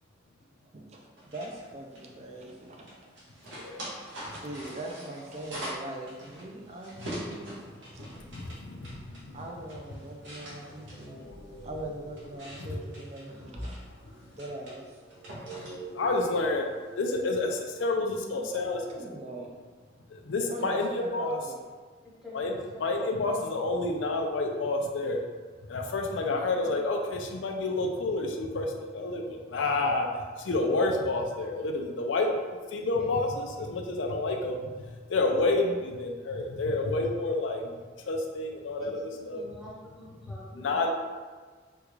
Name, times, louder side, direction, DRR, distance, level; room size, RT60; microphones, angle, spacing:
voice 1, 0.7-3.1 3.5-7.5 7.9-8.0 9.3-11.3 11.6-13.8 14.2-15.0 18.3-19.5 20.5-21.6, right 1 dB, 35° right, 0 dB, 0.4 m, -41 dB
sound 1, 1.2-17.6, equal, 75° right, 0.9 m, -45 dB
voice 2, 3.5-3.9 4.3-4.4 8.0-9.4 9.9-10.0 10.5-10.8 11.1-11.2 12.6-12.8 15.9-16.7 17.0-18.8 20.1-21.4 22.3-22.5 22.8-25.3 25.7-30.1 30.4-37.7 38.1-39.4 40.5-40.9, left 2 dB, 85° left, 2 dB, 0.4 m, -29 dB
sound 2, 10.7-18.1, right 1 dB, 35° left, 0.7 m, -48 dB
voice 3, 22.2-23.6 26.3-26.8 33.0-33.1 33.6-33.8 38.8-40.9, left 1 dB, ahead, -7 dB, 0.7 m, -47 dB
3.5 x 2.3 x 3.0 m, 1.4 s
head